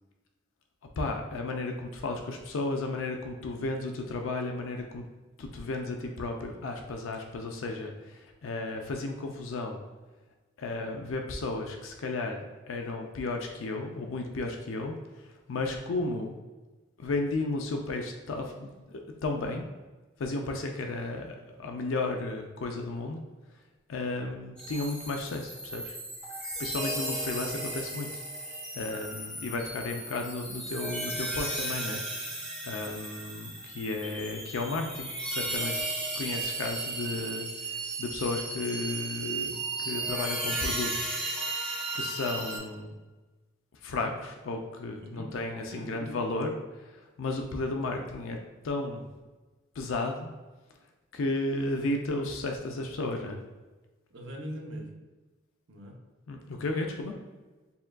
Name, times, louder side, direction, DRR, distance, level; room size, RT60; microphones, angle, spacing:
voice 1, 1.0-5.1 5.4-9.8 10.6-16.3 17.0-19.7 20.2-23.2 23.9-26.0 26.6-28.1 28.7-32.4 32.6-35.7 36.2-41.2 41.9-42.9 43.8-48.4 48.6-49.1 49.8-50.3 51.1-53.4 56.3-57.1, left 2 dB, 80° left, 3 dB, 0.4 m, -34 dB
voice 2, 24.0-24.3 45.0-45.3 45.7-46.2 54.1-55.0 55.7-56.0, equal, 65° right, 1 dB, 0.7 m, -42 dB
sound 1, 24.6-42.6, right 2 dB, 5° left, 1.1 m, -35 dB
6.8 x 2.4 x 2.2 m, 1.2 s
head